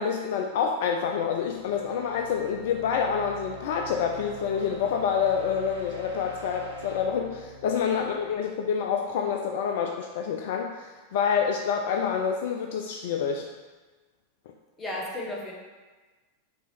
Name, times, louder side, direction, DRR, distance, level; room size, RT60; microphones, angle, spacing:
voice 1, 0.0-13.5, left 7 dB, 55° left, 3 dB, 0.3 m, -27 dB
sound 1, 1.2-8.9, right 1 dB, 70° right, 0.9 m, -44 dB
voice 2, 7.9-8.3 14.8-15.5, left 1 dB, 10° left, -3 dB, 1.0 m, -35 dB
5.1 x 2.8 x 3.3 m, 1.3 s
figure-of-eight pair, 90°, 0 cm